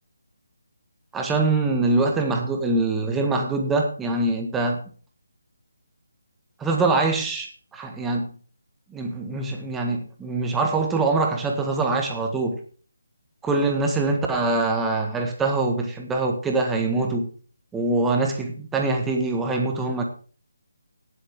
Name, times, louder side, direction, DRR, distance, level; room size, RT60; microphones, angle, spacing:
voice 1, 1.1-4.8 6.6-8.3 8.9-12.6 13.4-17.3 17.7-20.0, right 3 dB, 5° right, 2 dB, 1.5 m, -24 dB
18.0 x 7.8 x 3.6 m, 0.40 s
figure-of-eight pair, 160°, 0 cm